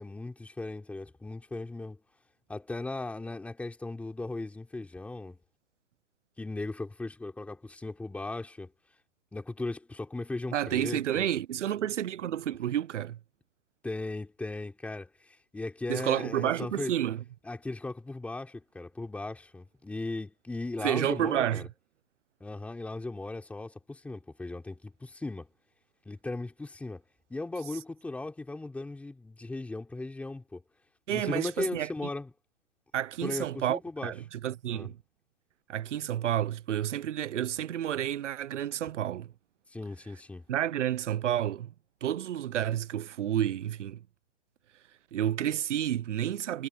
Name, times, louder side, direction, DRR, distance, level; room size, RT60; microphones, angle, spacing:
voice 1, 0.0-2.0 2.5-5.4 6.4-8.7 9.3-11.3 13.8-16.9 17.4-21.7 22.4-25.5 26.1-27.0 27.3-30.6 31.1-32.3 33.2-34.1 34.7-34.9 39.7-40.4, left 2 dB, 5° left, 3.5 m, -37 dB
voice 2, 10.5-13.2 15.9-17.2 20.8-21.6 31.1-31.9 32.9-35.0 35.7-39.3 40.5-41.7 42.0-44.0 45.1-46.7, right 11 dB, 75° right, 0.9 m, -30 dB
hypercardioid pair, 160°, 37 cm